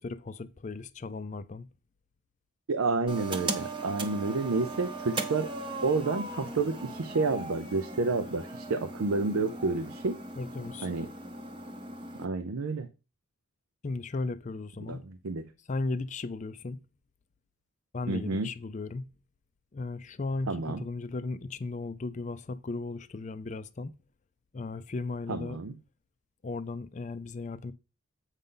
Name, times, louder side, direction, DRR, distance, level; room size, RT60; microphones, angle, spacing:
voice 1, 0.0-1.7 10.4-10.9 13.8-15.0 15.7-16.8 17.9-19.1 19.7-23.9 24.5-25.6 26.4-27.7, left 3 dB, 35° left, 0.4 m, -36 dB
voice 2, 2.7-5.5 5.8-10.2 10.8-11.1 12.2-12.9 14.9-15.5 18.1-18.5 20.5-20.8 25.3-25.8, right 3 dB, 85° right, 0.6 m, -30 dB
sound 1, 3.1-12.3, right 2 dB, 25° right, 0.8 m, -38 dB
8.1 x 5.4 x 3.8 m
head